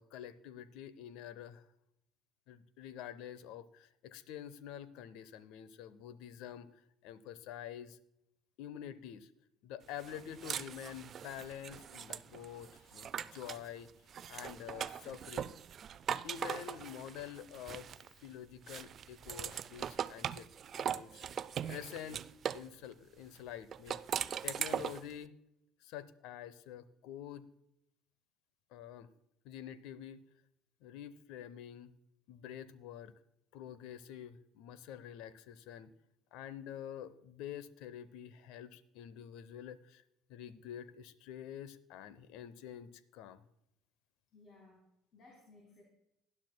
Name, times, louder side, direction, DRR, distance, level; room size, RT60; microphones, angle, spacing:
voice 1, 0.0-1.7 2.5-8.0 8.6-9.3 9.6-13.9 14.3-15.5 16.2-17.9 18.2-20.5 20.8-21.3 21.7-22.3 22.5-25.4 25.8-27.5 28.7-29.1 29.4-30.2 30.8-31.9 32.3-33.1 33.5-35.9 36.3-40.0 40.3-43.4, left 10 dB, 65° left, 17 dB, 0.7 m, -47 dB
sound 1, 10.0-13.7 14.1-18.3 18.7-22.7 23.7-25.1, right 8 dB, 45° right, 0.4 m, -40 dB
voice 2, 44.3-45.8, left 2 dB, 45° left, -1 dB, 3.5 m, -60 dB
19.0 x 11.0 x 2.2 m, 0.81 s
hypercardioid pair, 60°, 0 cm